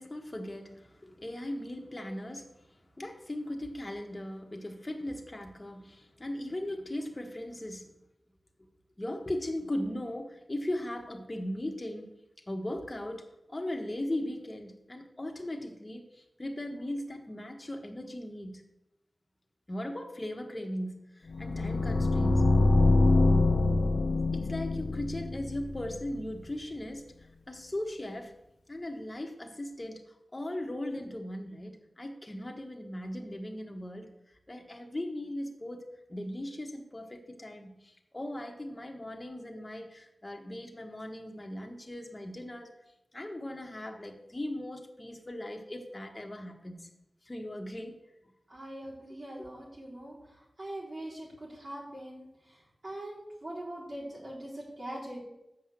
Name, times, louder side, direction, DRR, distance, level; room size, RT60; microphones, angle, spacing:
voice 1, 0.0-7.9 9.0-12.1 12.5-18.6 19.7-22.5 24.3-28.3 28.7-30.0 30.3-34.1 34.5-42.7 43.1-46.9 47.2-48.0 49.1-49.5, left 1 dB, 25° left, 3 dB, 1.4 m, -38 dB
sound 1, 21.3-26.3, left 2 dB, 85° left, 0.9 m, -25 dB
voice 2, 48.5-55.2, right 1 dB, 55° right, -7 dB, 4.1 m, -42 dB
7.3 x 5.7 x 7.5 m, 0.88 s
wide cardioid pair, 70°, 0 cm